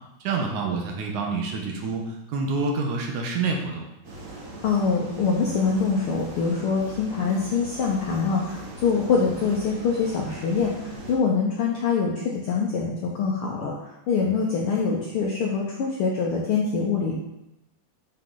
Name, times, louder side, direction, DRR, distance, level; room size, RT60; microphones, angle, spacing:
voice 1, 0.2-3.9, right 4 dB, 90° right, 1 dB, 2.5 m, -27 dB
sound 1, 4.0-11.2, right 1 dB, 60° right, 0.8 m, -40 dB
voice 2, 4.6-17.2, left 5 dB, 80° left, -1 dB, 1.2 m, -24 dB
6.8 x 5.6 x 3.8 m, 0.90 s
omnidirectional pair, 3.4 m